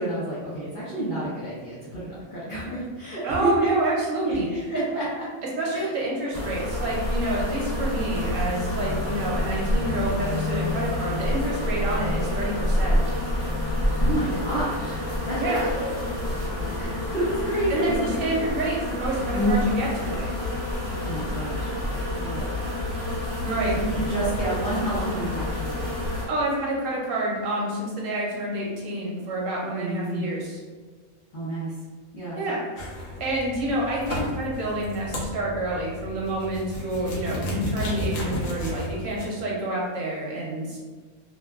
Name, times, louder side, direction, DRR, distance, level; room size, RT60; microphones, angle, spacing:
voice 1, 0.0-3.7 4.2-5.3 5.7-5.9 14.0-15.0 15.3-15.9 16.8-18.4 19.1-19.2 20.9-21.7 22.1-22.5 23.6-26.0 29.7-30.3 31.3-31.7 32.1-32.4, right 1 dB, 50° left, -9 dB, 0.6 m, -29 dB
voice 2, 3.2-4.7 5.6-13.0 15.4-15.7 17.7-17.9 18.2-20.3 23.4-23.7 26.3-30.6 32.3-32.6 33.2-40.8, right 1 dB, 70° right, -4 dB, 0.9 m, -28 dB
sound 1, 6.3-26.3, left 1 dB, 20° right, 0.8 m, -27 dB
sound 2, 32.8-39.2, left 1 dB, 70° left, 1.0 m, -33 dB
2.8 x 2.2 x 2.3 m, 1.4 s
omnidirectional pair, 1.5 m